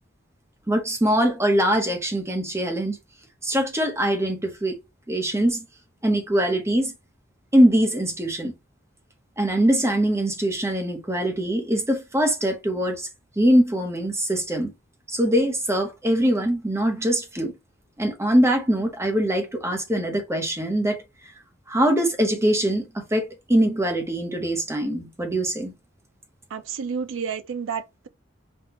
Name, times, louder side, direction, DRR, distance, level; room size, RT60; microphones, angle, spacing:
voice 1, 0.7-3.0 3.4-4.8 5.1-5.6 6.0-6.9 7.5-8.5 9.4-13.1 13.4-14.7 15.1-17.5 18.0-21.0 21.7-25.7, right 1 dB, 15° right, 0.9 m, -22 dB
voice 2, 26.5-28.1, right 6 dB, 75° right, 0.4 m, -30 dB
5.4 x 2.3 x 2.9 m
head